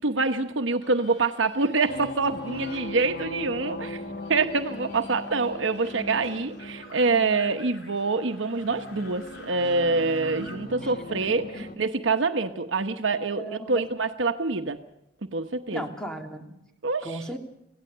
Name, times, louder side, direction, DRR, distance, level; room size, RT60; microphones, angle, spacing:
voice 1, 0.0-4.0 4.3-14.8 15.2-15.8 16.8-17.2, right 3 dB, 80° right, 7 dB, 1.1 m, -26 dB
sound 1, 0.8-3.6 3.8-10.6, left 2 dB, 65° left, 5.2 m, -50 dB
sound 2, 1.9-11.8, left 1 dB, 50° left, 1.6 m, -39 dB
voice 2, 10.8-11.6 13.4-13.8 15.7-16.5 17.0-17.4, right 1 dB, 5° left, 3 dB, 2.7 m, -36 dB
27.0 x 17.0 x 6.8 m, 0.86 s
head